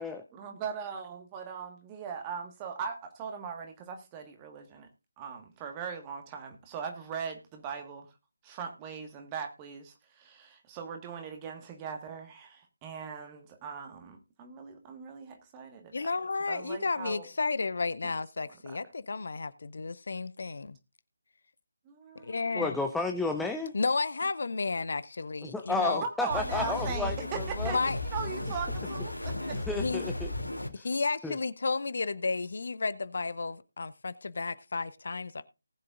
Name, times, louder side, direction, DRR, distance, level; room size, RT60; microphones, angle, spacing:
voice 1, 0.3-4.9 5.2-8.1 8.4-16.1 16.5-17.3 18.4-18.8 21.8-22.6 26.0-27.8 28.1-29.6, right 6 dB, 15° right, 1.6 m, -40 dB
voice 2, 15.9-20.8 22.2-22.8 23.7-26.0 27.6-28.0 29.7-30.0 30.7-35.4, left 4 dB, 50° left, 0.7 m, -32 dB
voice 3, 22.5-23.7 25.4-27.8 29.5-30.3 30.8-30.9 31.2-31.4, left 3 dB, ahead, 0.5 m, -32 dB
sound 1, 26.3-30.7, left 2 dB, 85° left, 2.7 m, -35 dB
19.0 x 7.6 x 2.5 m
figure-of-eight pair, 155°, 0 cm